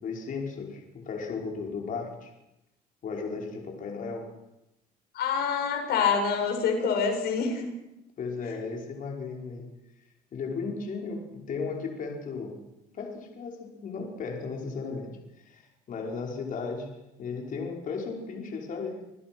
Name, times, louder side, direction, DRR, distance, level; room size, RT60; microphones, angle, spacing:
voice 1, 0.0-2.3 3.0-4.3 8.2-9.7 10.3-12.6 12.9-19.0, left 4 dB, 50° left, 1 dB, 5.3 m, -35 dB
voice 2, 5.1-7.7, left 6 dB, 70° left, 4 dB, 7.2 m, -26 dB
28.0 x 21.0 x 6.2 m, 0.91 s
cardioid pair, 110°, 17 cm